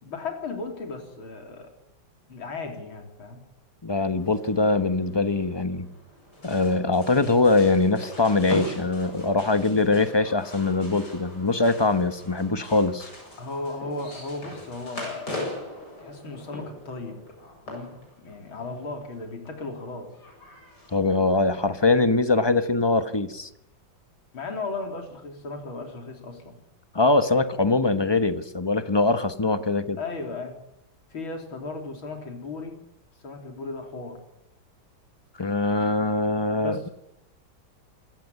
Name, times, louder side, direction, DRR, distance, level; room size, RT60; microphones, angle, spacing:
voice 1, 0.0-1.7 2.3-3.4 13.4-15.4 16.0-17.2 17.7-20.1 24.3-26.6 30.0-30.5 31.1-32.8 33.2-34.2 36.6-36.9, left 3 dB, 90° left, 4 dB, 4.2 m, -36 dB
voice 2, 3.8-5.9 6.4-13.1 20.9-23.5 26.9-30.0 35.4-36.9, left 3 dB, 20° left, 11 dB, 0.8 m, -22 dB
sound 1, 4.2-21.8, left 1 dB, 55° left, 8.5 m, -41 dB
26.5 x 14.5 x 9.6 m, 0.80 s
omnidirectional pair, 2.2 m